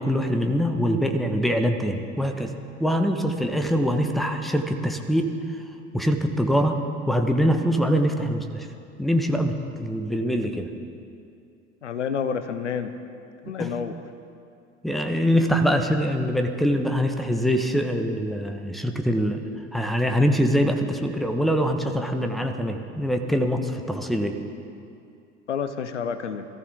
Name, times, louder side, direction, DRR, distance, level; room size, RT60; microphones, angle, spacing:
voice 1, 0.0-2.5 2.8-5.3 5.9-6.8 7.1-8.7 9.0-9.5 9.8-10.7 13.5-13.7 14.8-19.4 19.7-24.4, equal, ahead, 5 dB, 1.1 m, -23 dB
voice 2, 11.8-13.0 13.4-14.0 25.5-26.5, left 7 dB, 80° left, 11 dB, 0.7 m, -29 dB
22.0 x 14.0 x 3.5 m, 2.5 s
figure-of-eight pair, 65°, 35 cm